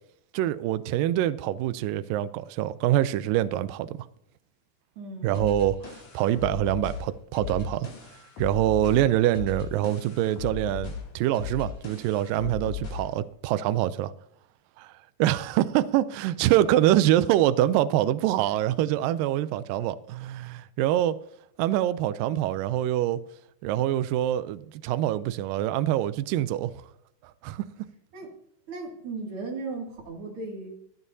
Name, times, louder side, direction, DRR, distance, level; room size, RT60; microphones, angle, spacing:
voice 1, 0.3-4.1 5.2-7.9 8.4-14.1 14.8-14.9 15.2-21.2 21.6-23.2 23.6-26.7 27.4-27.9, right 13 dB, 80° right, 2.1 m, -25 dB
voice 2, 5.0-5.5 8.8-9.0 28.1-28.3 28.7-30.7, right 3 dB, 40° right, 2.9 m, -37 dB
sound 1, 5.3-13.2, left 7 dB, 60° left, 3.9 m, -37 dB
25.0 x 9.1 x 2.7 m
omnidirectional pair, 4.2 m